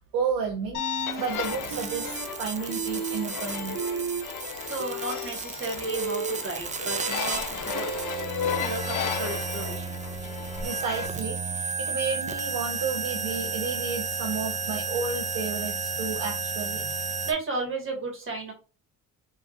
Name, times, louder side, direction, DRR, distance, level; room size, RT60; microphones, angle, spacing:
voice 1, 0.1-0.8 1.2-3.9 10.6-16.9, right 5 dB, 90° right, 1 dB, 0.8 m, -32 dB
sound 1, 0.7-11.1, left 8 dB, 70° left, 0.7 m, -35 dB
sound 2, 0.8-1.3 1.7-2.2 2.5-3.3 3.6-8.3, right 5 dB, 65° right, 1.4 m, -34 dB
sound 3, 1.0-17.3, right 4 dB, 20° right, 0.4 m, -33 dB
voice 2, 4.5-10.0 17.2-18.5, right 3 dB, 35° right, 2 dB, 1.7 m, -34 dB
3.7 x 2.9 x 2.5 m, 0.33 s
cardioid pair, 90°, 33 cm